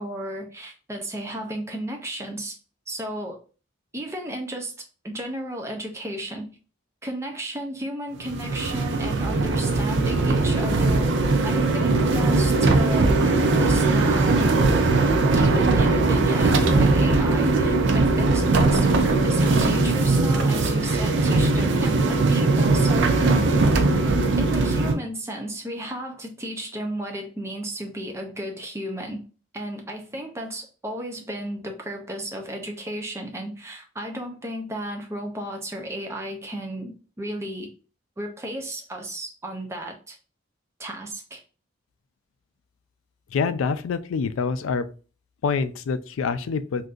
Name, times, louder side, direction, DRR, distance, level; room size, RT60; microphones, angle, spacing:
voice 1, 0.0-2.6 2.9-3.4 3.9-4.7 5.0-6.5 7.0-11.1 11.4-14.5 15.3-23.4 24.4-29.2 29.5-37.7 38.2-40.2 40.8-41.4, right 1 dB, 15° right, 3 dB, 0.5 m, -34 dB
sound 1, 8.2-24.9, right 3 dB, 60° right, 0.4 m, -20 dB
voice 2, 43.3-44.9 45.4-46.9, left 5 dB, 80° left, 12 dB, 0.3 m, -26 dB
3.7 x 2.6 x 2.4 m, 0.36 s
head